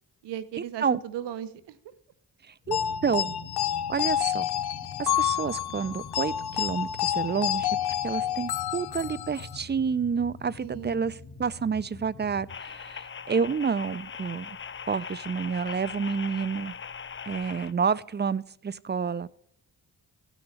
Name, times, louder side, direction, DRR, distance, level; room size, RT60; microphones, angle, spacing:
voice 1, 0.2-1.8 10.6-11.1, right 10 dB, 85° right, 15 dB, 0.8 m, -37 dB
voice 2, 2.5-3.4 3.9-4.5 5.0-7.8 8.0-11.1 11.4-14.6 14.9-16.7 17.3-19.3, right 6 dB, 25° right, 21 dB, 0.5 m, -29 dB
sound 1, 2.6-12.5, left 4 dB, 45° left, 1.9 m, -45 dB
sound 2, 2.7-9.6, left 11 dB, 65° left, 0.7 m, -29 dB
sound 3, 12.5-17.7, left 6 dB, 30° left, 0.6 m, -40 dB
15.0 x 6.1 x 3.2 m, 0.67 s
supercardioid pair, 55°, 41 cm